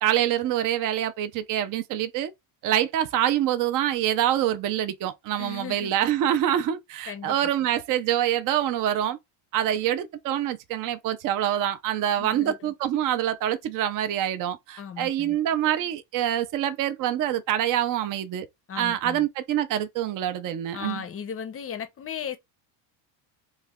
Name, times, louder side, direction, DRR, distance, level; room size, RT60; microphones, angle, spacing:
voice 1, 0.0-2.3 2.6-9.2 9.5-18.5 18.8-21.0, right 11 dB, 40° right, 0.5 m, -25 dB
voice 2, 5.4-5.9 7.1-7.5 12.2-12.7 14.8-15.4 18.7-19.3 20.7-22.4, left 8 dB, 30° left, 0.6 m, -36 dB
3.1 x 2.3 x 3.5 m
cardioid pair, 120°, 50 cm